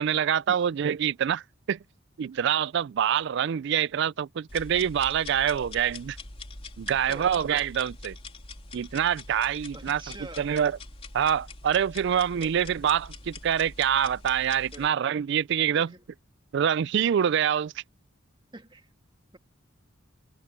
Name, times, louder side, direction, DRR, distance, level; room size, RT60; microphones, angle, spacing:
voice 1, 0.0-1.4 1.7-1.8 2.2-6.2 6.8-8.2 8.7-10.0 10.4-10.8 11.1-15.9 16.5-17.7, right 8 dB, 60° right, 0.3 m, -25 dB
sound 1, 4.5-14.9, left 3 dB, 30° left, 3.7 m, -44 dB
voice 2, 6.9-7.3 9.3-9.4 9.7-10.6 12.4-12.5 14.7-14.9 15.7-16.0 18.5-18.9, right 2 dB, 25° right, 1.7 m, -46 dB
head